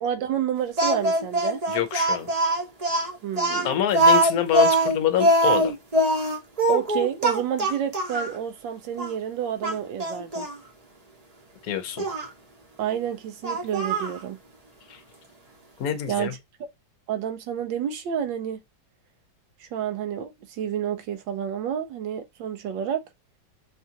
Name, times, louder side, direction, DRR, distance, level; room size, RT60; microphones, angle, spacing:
voice 1, 0.0-1.6 3.2-3.8 6.7-10.5 12.8-14.4 16.1-16.3 17.1-18.6 19.6-23.0, right 9 dB, 85° right, 1.3 m, -29 dB
Speech, 0.8-8.3 9.0-9.1 9.6-10.6 12.0-12.3 13.4-14.2, right 1 dB, 30° right, 0.7 m, -22 dB
voice 2, 1.7-2.3 3.6-5.8 11.6-12.1 14.9-15.0 15.8-16.3, left 10 dB, 60° left, 1.1 m, -26 dB
6.0 x 2.4 x 2.8 m
omnidirectional pair, 2.0 m